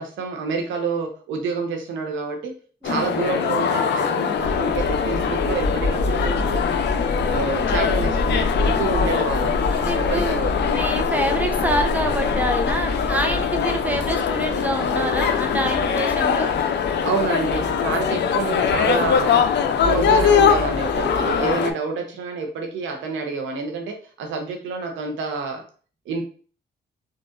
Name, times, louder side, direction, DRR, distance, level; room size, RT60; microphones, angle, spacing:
voice 1, 0.0-2.5 2.8-6.6 7.3-10.4 10.8-10.9 17.0-19.5 19.8-25.6 26.1-26.2, right 4 dB, 90° right, 4 dB, 0.8 m, -28 dB
sound 1, 2.8-21.7, left 7 dB, 65° left, 0.4 m, -22 dB
sound 2, 4.3-21.5, left 2 dB, 45° left, 1.0 m, -29 dB
voice 2, 9.7-16.5, right 1 dB, 10° right, 4 dB, 0.7 m, -26 dB
3.9 x 2.4 x 2.5 m, 0.40 s
cardioid pair, 70°, 19 cm